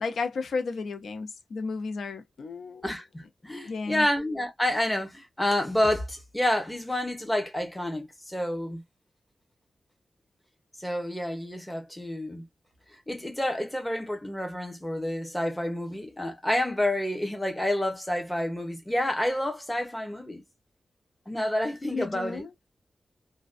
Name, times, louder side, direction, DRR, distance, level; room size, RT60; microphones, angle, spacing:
voice 1, 0.0-2.8 3.6-4.1 21.9-22.5, left 4 dB, 90° left, 0.4 m, -33 dB
voice 2, 2.8-8.8 10.8-12.4 13.1-20.4 21.3-22.4, left 1 dB, 10° left, 0.8 m, -29 dB
2.5 x 2.1 x 2.3 m
wide cardioid pair, 145°, 0 cm